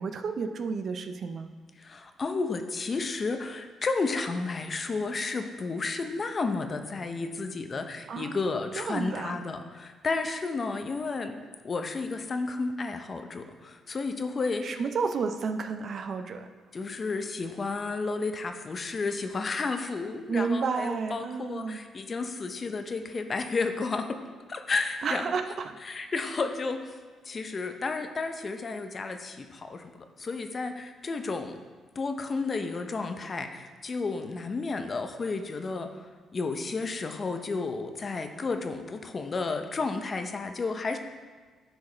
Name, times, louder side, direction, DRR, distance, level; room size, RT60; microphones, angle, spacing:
voice 1, 0.0-1.5 8.1-8.4 8.8-9.4 14.6-16.5 20.3-21.8 25.0-25.7, right 5 dB, 55° right, 8 dB, 0.5 m, -31 dB
voice 2, 1.8-11.3 11.6-14.8 16.7-24.2 24.5-25.3 25.8-27.0 27.2-31.5 32.0-35.9 36.3-41.0, left 3 dB, 35° left, 6 dB, 0.6 m, -32 dB
10.5 x 4.7 x 3.2 m, 1.4 s
cardioid pair, 90°, 0 cm